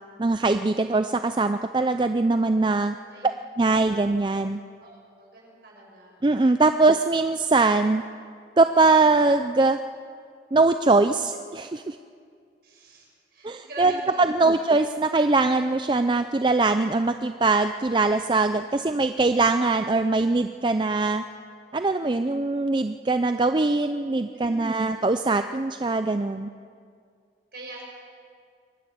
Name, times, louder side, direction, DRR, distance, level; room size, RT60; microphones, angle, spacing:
voice 1, 0.2-3.0 3.6-4.6 6.2-8.0 8.6-9.8 10.5-12.0 13.4-21.2 21.7-26.5, right 3 dB, 25° right, 9 dB, 0.4 m, -22 dB
voice 2, 4.8-6.2 12.6-14.6 24.3-24.8 27.5-27.8, right 2 dB, 60° right, -2 dB, 6.4 m, -44 dB
23.5 x 12.0 x 9.1 m, 2.2 s
head